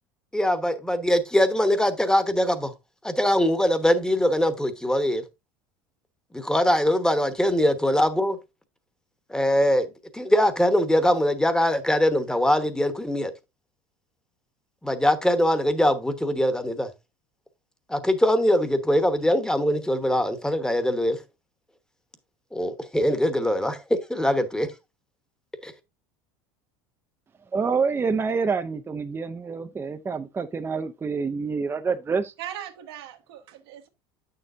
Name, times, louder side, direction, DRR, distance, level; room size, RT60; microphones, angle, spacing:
voice 1, 0.3-2.7 3.0-5.2 6.3-8.4 9.3-9.9 10.1-13.3 14.8-16.9 17.9-21.2 22.5-24.7 25.6-25.7, left 1 dB, 5° left, 1.1 m, -22 dB
voice 2, 27.5-32.3, right 5 dB, 20° right, 0.5 m, -27 dB
voice 3, 32.4-33.9, right 11 dB, 85° right, 1.5 m, -39 dB
8.6 x 6.7 x 2.6 m
supercardioid pair, 100°, 13 cm